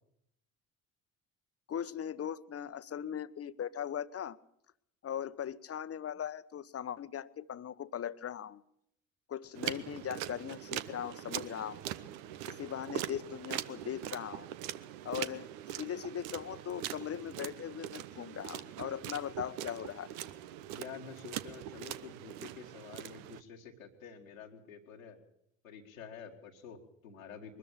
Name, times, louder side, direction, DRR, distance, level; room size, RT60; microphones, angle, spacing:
voice 1, 1.7-4.4 5.0-8.6 9.3-11.8 12.5-14.5 15.0-15.5 15.7-20.1, left 9 dB, 35° left, 15 dB, 1.0 m, -39 dB
sound 1, 9.6-23.4, right 12 dB, 70° right, 1.0 m, -42 dB
voice 2, 20.7-25.2 25.6-27.6, left 6 dB, 90° left, -1 dB, 2.0 m, -49 dB
22.5 x 13.5 x 8.8 m, 0.75 s
figure-of-eight pair, 55°, 39 cm